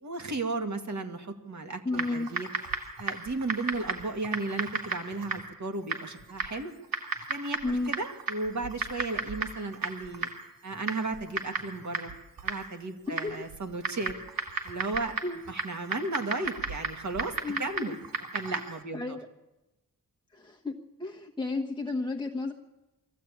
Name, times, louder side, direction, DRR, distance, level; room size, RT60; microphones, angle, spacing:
voice 1, 0.0-2.5 3.0-6.7 7.3-10.3 10.6-12.1 12.4-14.1 14.6-15.2 15.5-18.0 18.3-19.2, right 3 dB, 55° right, 4 dB, 2.3 m, -34 dB
voice 2, 1.8-2.3 7.6-7.9 13.1-13.4 15.2-15.4 17.4-17.9 18.5-18.6 18.9-19.3 20.3-22.5, left 3 dB, 15° left, 1 dB, 1.3 m, -33 dB
Typing, 1.9-18.8, right 4 dB, 90° right, 2.7 m, -36 dB
23.0 x 15.0 x 8.7 m, 0.99 s
wide cardioid pair, 135°, 34 cm